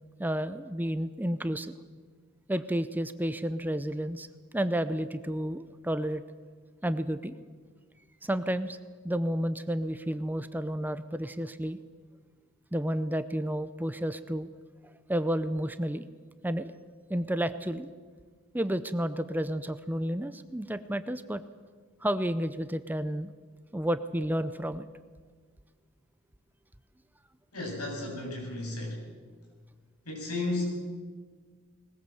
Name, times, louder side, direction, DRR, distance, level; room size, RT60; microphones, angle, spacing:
voice 1, 0.2-1.8 2.5-4.3 4.5-6.2 6.8-7.4 8.2-8.8 9.0-11.8 12.7-14.5 15.1-16.1 16.4-16.7 17.1-17.9 18.5-21.4 22.0-23.3 23.7-24.9, right 1 dB, 10° right, 12 dB, 0.6 m, -31 dB
voice 2, 27.5-29.0 30.0-30.7, left 2 dB, 80° left, 0 dB, 7.8 m, -33 dB
20.5 x 20.0 x 7.8 m, 1.5 s
head